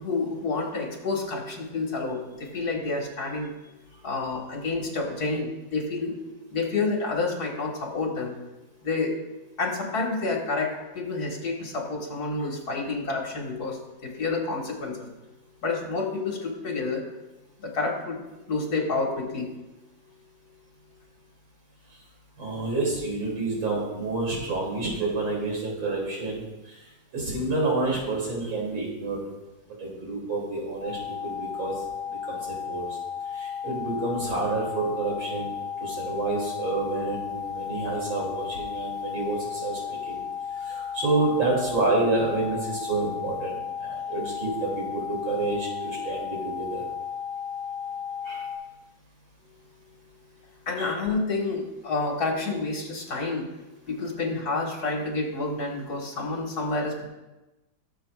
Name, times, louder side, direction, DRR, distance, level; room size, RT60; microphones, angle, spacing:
voice 1, 0.0-3.5 4.0-6.2 6.5-8.3 8.8-9.2 9.6-15.1 15.6-17.0 17.6-18.2 18.5-19.5 50.7-53.5 53.9-57.1, left 3 dB, 55° left, -1 dB, 2.2 m, -29 dB
voice 2, 22.4-26.8 27.1-29.2 29.8-33.0 33.3-35.5 35.8-40.2 40.5-46.8 48.2-48.4 50.8-50.9, right 3 dB, 80° right, -4 dB, 3.8 m, -29 dB
sound 1, 30.8-48.6, left 7 dB, 50° right, 2.9 m, -34 dB
17.0 x 7.4 x 2.5 m, 1.1 s
omnidirectional pair, 2.1 m